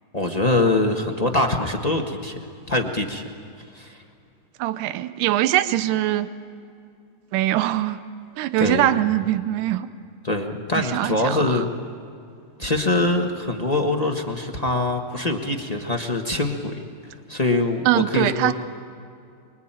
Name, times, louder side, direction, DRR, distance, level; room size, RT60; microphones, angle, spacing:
voice 1, 0.1-2.4 2.7-3.2 3.7-4.0 8.6-9.0 10.2-11.7 12.6-16.8 17.3-18.5, left 2 dB, 35° left, 2 dB, 0.6 m, -23 dB
voice 2, 4.6-6.3 7.3-8.0 8.4-9.9 10.7-11.7 17.9-18.5, right 14 dB, 85° right, 11 dB, 2.4 m, -22 dB
25.0 x 24.5 x 9.1 m, 2.4 s
omnidirectional pair, 3.7 m